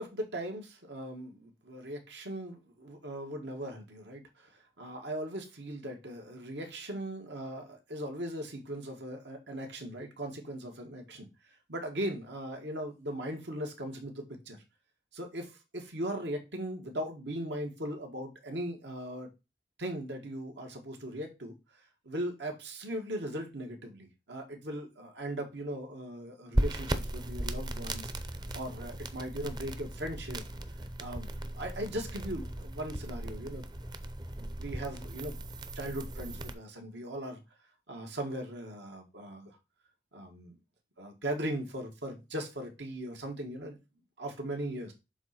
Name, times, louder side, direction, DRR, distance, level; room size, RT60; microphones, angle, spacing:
voice 1, 0.0-4.5 4.8-11.3 11.7-14.6 15.1-19.3 19.8-21.5 22.0-28.1 28.5-30.5 31.0-31.3 31.5-33.7 34.4-35.4 35.8-37.4 37.9-39.6 40.1-40.6 41.0-43.8 44.2-44.9, right 1 dB, 85° right, 1.9 m, -39 dB
sound 1, 26.5-36.5, right 1 dB, 25° right, 0.6 m, -36 dB
7.0 x 3.9 x 4.3 m
head